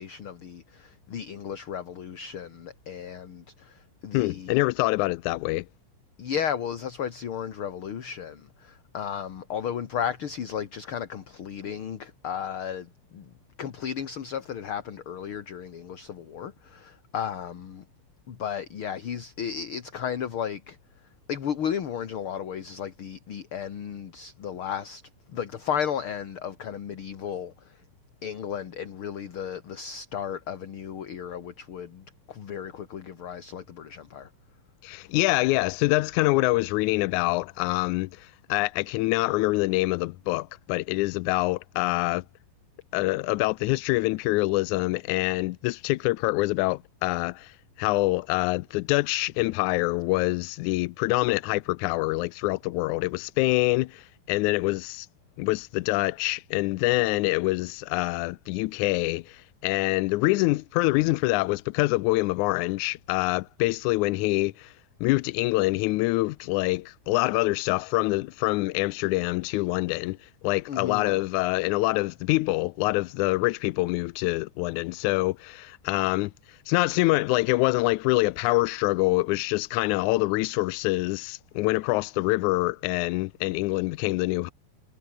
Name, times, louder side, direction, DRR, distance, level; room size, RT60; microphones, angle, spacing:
voice 1, 0.0-4.6 6.2-13.3 13.6-17.8 18.3-20.8 21.3-25.0 25.3-27.8 28.2-34.3 70.7-71.2, left 8 dB, 45° left, 2.2 m, -34 dB
voice 2, 4.1-5.7 34.8-42.2 42.9-55.1 55.4-64.7 65.0-84.5, left 21 dB, 80° left, 1.8 m, -25 dB
omnidirectional pair, 3.8 m